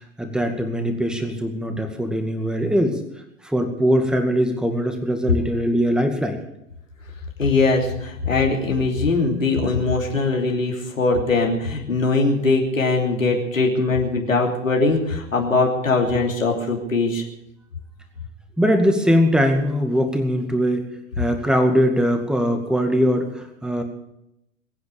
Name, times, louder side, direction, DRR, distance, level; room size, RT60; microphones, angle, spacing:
voice 1, 0.2-3.0 3.4-6.4 18.6-20.9 21.2-23.8, equal, ahead, 5 dB, 2.2 m, -21 dB
voice 2, 7.4-17.2, left 3 dB, 80° left, 0 dB, 3.1 m, -21 dB
22.5 x 9.6 x 6.7 m, 0.83 s
figure-of-eight pair, 80°, 39 cm